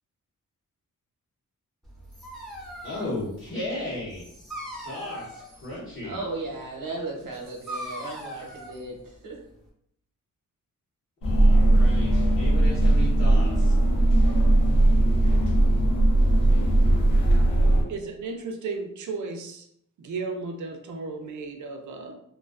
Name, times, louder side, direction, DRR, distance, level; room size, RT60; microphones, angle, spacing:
Dog, 1.8-9.7, equal, ahead, 0.4 m, -41 dB
voice 1, 2.8-4.3 4.9-6.2 11.2-13.7, left 1 dB, 40° left, -9 dB, 0.8 m, -35 dB
voice 2, 6.0-9.4, right 2 dB, 80° right, -1 dB, 0.8 m, -36 dB
sagrada familia cathedral omni inside tower, 11.2-17.8, right 1 dB, 75° left, 0.6 m, -19 dB
voice 3, 17.9-19.7 20.0-22.1, right 4 dB, 65° right, 4 dB, 0.5 m, -34 dB
2.3 x 2.3 x 2.3 m, 0.73 s
wide cardioid pair, 150°, 33 cm